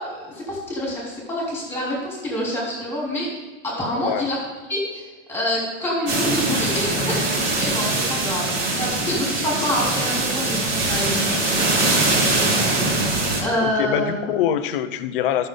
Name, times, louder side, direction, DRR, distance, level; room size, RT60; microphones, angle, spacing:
voice 1, 0.0-3.3 3.6-4.4 4.7-12.8 13.4-14.1, left 1 dB, 5° left, -4 dB, 3.4 m, -27 dB
sound 1, 6.1-13.4, right 2 dB, 40° right, 3.4 m, -22 dB
voice 2, 13.6-15.5, left 10 dB, 45° left, 11 dB, 0.7 m, -24 dB
13.5 x 6.8 x 3.9 m, 1.3 s
supercardioid pair, 160°, 36 cm